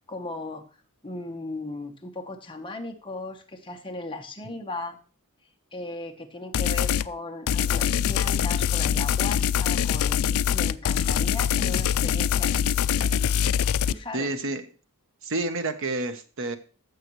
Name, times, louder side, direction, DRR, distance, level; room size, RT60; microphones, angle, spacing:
voice 1, 0.1-0.7 1.0-5.0 5.7-12.8 13.9-14.3, left 2 dB, 20° left, 4 dB, 1.1 m, -37 dB
sound 1, 6.5-7.1 7.5-13.9, left 9 dB, 65° left, 0.4 m, -24 dB
voice 2, 14.1-14.6 15.2-16.6, right 2 dB, 60° right, 8 dB, 1.1 m, -29 dB
14.5 x 6.5 x 3.1 m, 0.36 s
head